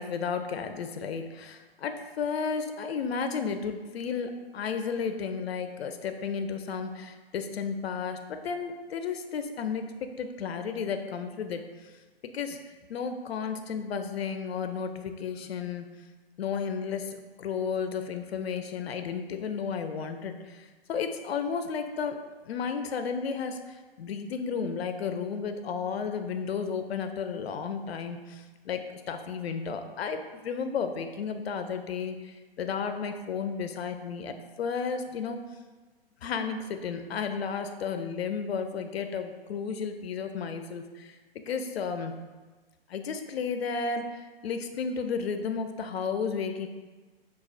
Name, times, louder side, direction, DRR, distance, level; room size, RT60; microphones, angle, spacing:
voice 1, 0.0-9.8 10.2-11.6 12.3-12.6 12.9-15.9 16.4-22.2 22.5-28.8 29.1-35.4 36.2-41.1 41.5-42.1 42.9-46.7, left 6 dB, 90° left, 7 dB, 0.5 m, -33 dB
5.7 x 2.3 x 2.4 m, 1.3 s
hypercardioid pair, 170°, 30 cm